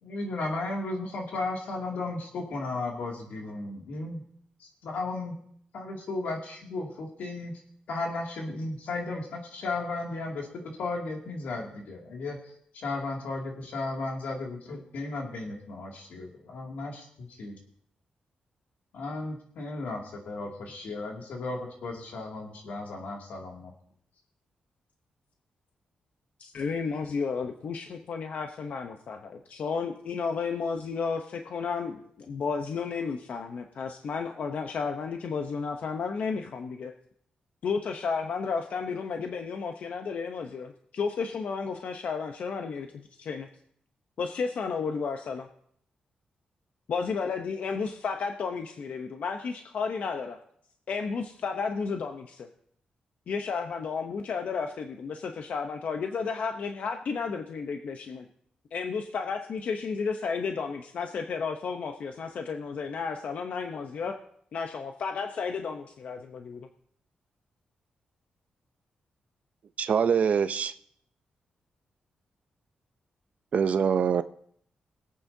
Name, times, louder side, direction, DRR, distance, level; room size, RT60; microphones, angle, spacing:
voice 1, 0.0-4.2 4.6-5.3 5.7-7.5 7.9-10.5 10.8-17.6 18.9-23.7, left 2 dB, 85° left, 0 dB, 2.4 m, -35 dB
voice 2, 26.4-36.9 37.6-43.5 44.2-45.5 46.9-50.4 50.9-52.5 53.3-58.3 58.7-64.1 64.5-66.7, left 5 dB, 65° left, 5 dB, 0.8 m, -32 dB
voice 3, 69.8-70.7 73.5-74.2, right 7 dB, 60° right, 12 dB, 0.6 m, -24 dB
22.0 x 8.7 x 2.7 m, 0.66 s
cardioid pair, 100°, 3 cm